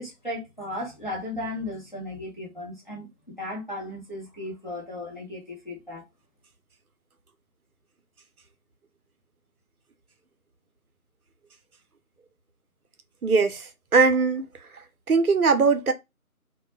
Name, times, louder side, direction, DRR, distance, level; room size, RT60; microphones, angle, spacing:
voice 1, 0.0-6.0, left 1 dB, 30° left, 0.9 m, -35 dB
voice 2, 13.2-14.5 15.1-15.9, right 4 dB, 75° right, 0.7 m, -20 dB
2.3 x 2.1 x 3.0 m
figure-of-eight pair, 175°, 45 cm